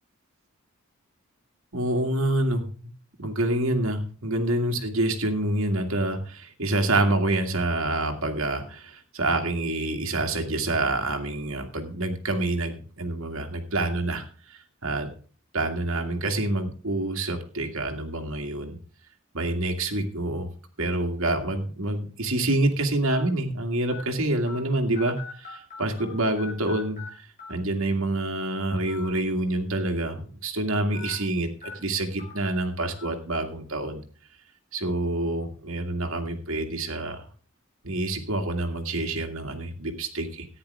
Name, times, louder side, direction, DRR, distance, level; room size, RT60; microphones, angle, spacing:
voice 1, 1.7-2.7 3.2-14.2 14.5-15.1 15.5-18.8 19.3-20.5 20.8-34.0 34.7-37.2 37.8-40.5, right 2 dB, 75° right, 4 dB, 2.2 m, -27 dB
sound 1, 20.9-21.1 21.9-22.0 23.1-23.2 23.9-24.0 24.5-24.6 24.9-26.1 26.4-27.1 27.4-27.5 28.8-29.1 29.5-29.6 30.9-31.1 31.6-31.7 32.2-32.3 33.0-33.1, left 5 dB, 40° left, 5.7 m, -41 dB
14.0 x 10.0 x 3.4 m, 0.40 s
head